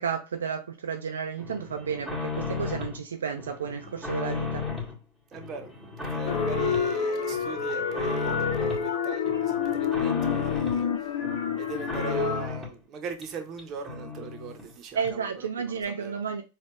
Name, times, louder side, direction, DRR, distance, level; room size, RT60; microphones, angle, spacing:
voice 1, 0.0-2.1 2.4-4.6 15.0-16.4, right 6 dB, 80° right, 0.4 m, -32 dB
sound 1, 1.4-3.0 3.4-4.9 5.3-6.9 7.3-8.9 9.2-10.8 11.2-12.8 13.2-13.3 13.6-13.7 13.8-14.7 15.0-15.1, left 4 dB, 5° left, 1.7 m, -34 dB
voice 2, 5.3-11.2 11.6-16.2, right 5 dB, 40° right, 0.8 m, -39 dB
sound 2, 6.3-12.5, left 6 dB, 65° left, 0.7 m, -28 dB
4.1 x 2.3 x 3.3 m
hypercardioid pair, 95°, 0 cm